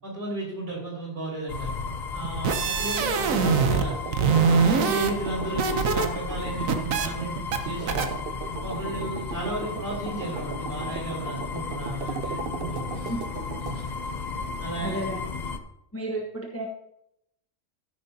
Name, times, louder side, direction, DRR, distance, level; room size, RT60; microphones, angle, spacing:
voice 1, 0.0-1.8 2.1-4.0 4.4-7.4 7.6-8.2 8.6-12.9 13.6-13.7 14.6-15.1, right 1 dB, 40° right, -4 dB, 5.2 m, -34 dB
sound 1, 1.5-15.6, left 4 dB, 40° left, 0.7 m, -34 dB
sound 2, 2.2-3.9 4.1-6.1 6.4-7.1 7.5-7.6 7.9-8.1, right 5 dB, 80° right, 1.3 m, -23 dB
sound 3, 3.0-13.8, right 9 dB, 60° right, 0.6 m, -39 dB
voice 2, 14.8-15.2 15.9-16.7, right 1 dB, 10° left, -1 dB, 1.2 m, -32 dB
14.0 x 9.7 x 2.8 m, 0.80 s
omnidirectional pair, 1.4 m